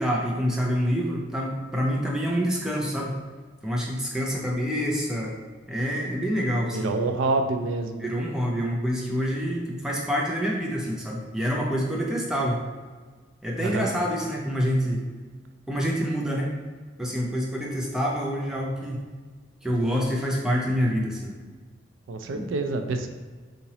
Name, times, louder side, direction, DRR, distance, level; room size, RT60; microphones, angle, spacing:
voice 1, 0.0-3.1 3.6-5.4 5.7-6.9 8.0-12.6 13.4-15.0 15.7-16.5 17.0-19.0 19.6-21.3 22.3-22.5, equal, 5° right, -3 dB, 0.4 m, -27 dB
voice 2, 6.7-8.1 13.6-13.9 22.1-23.1, right 3 dB, 85° right, 6 dB, 0.4 m, -27 dB
3.8 x 2.9 x 2.8 m, 1.4 s
head